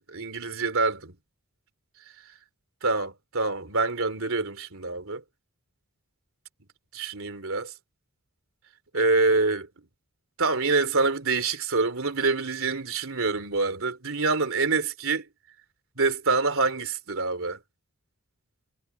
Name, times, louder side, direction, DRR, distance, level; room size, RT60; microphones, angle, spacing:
voice 1, 0.1-1.1 2.8-5.2 6.9-7.7 8.9-9.7 10.4-15.2 16.0-17.6, right 3 dB, 65° right, 3.6 m, -26 dB
head